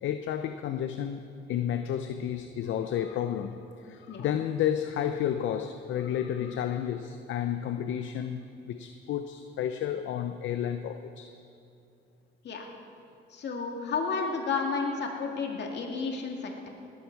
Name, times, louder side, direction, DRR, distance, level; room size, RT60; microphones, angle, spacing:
voice 1, 0.0-11.3, left 10 dB, 75° left, 8 dB, 0.6 m, -31 dB
voice 2, 13.3-16.7, left 4 dB, 60° left, 1 dB, 2.3 m, -32 dB
18.5 x 13.0 x 4.7 m, 2.7 s
cardioid pair, 90°, 20 cm